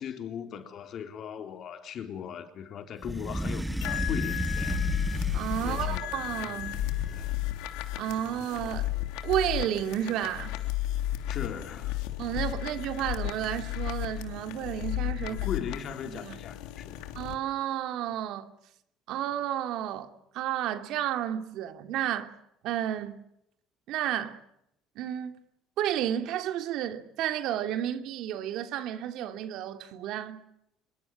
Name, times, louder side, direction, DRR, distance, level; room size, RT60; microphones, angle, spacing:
voice 1, 0.0-4.8 5.6-6.6 7.1-7.3 11.3-12.0 15.2-17.0, left 8 dB, 50° left, 3.9 m, -38 dB
sound 1, 3.0-6.1 6.6-7.5, right 1 dB, 5° right, 1.0 m, -33 dB
sound 2, 3.8-17.3, left 14 dB, 85° left, 3.0 m, -33 dB
voice 2, 5.3-6.8 8.0-8.9 9.2-10.5 12.2-15.4 16.0-16.4 17.1-18.5 19.1-22.3 22.6-23.2 23.9-24.4 25.0-25.3 25.8-30.4, right 11 dB, 70° right, 2.8 m, -31 dB
26.5 x 22.5 x 7.4 m
cardioid pair, 125°, 0 cm